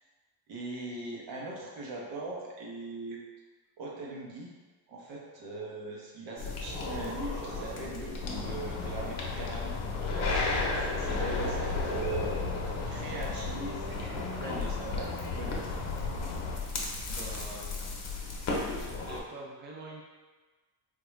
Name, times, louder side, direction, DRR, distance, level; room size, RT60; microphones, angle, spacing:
voice 1, 0.5-3.2 3.8-4.5 4.9-9.8 10.7-12.4 12.8-15.6, right 2 dB, 70° right, -3 dB, 1.0 m, -40 dB
sound 1, 6.4-19.2, left 3 dB, 35° left, 0.7 m, -35 dB
sound 2, 8.2-16.6, left 3 dB, 80° left, 0.6 m, -37 dB
voice 2, 10.4-10.7 17.1-18.0 18.6-20.0, right 2 dB, 25° right, -2 dB, 0.4 m, -46 dB
3.6 x 2.3 x 3.0 m, 1.3 s
cardioid pair, 115°, 45 cm